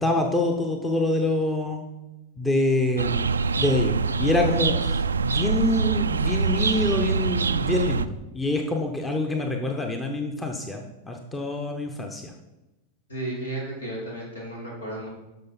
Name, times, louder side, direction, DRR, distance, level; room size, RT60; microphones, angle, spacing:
voice 1, 0.0-1.8 2.4-12.2, left 2 dB, 10° left, 3 dB, 1.0 m, -26 dB
sound 1, 3.0-8.0, right 5 dB, 75° right, 0.3 m, -24 dB
voice 2, 13.1-15.1, right 1 dB, 70° left, -3 dB, 3.6 m, -33 dB
13.5 x 5.6 x 4.2 m, 1.0 s
figure-of-eight pair, 90°, 0 cm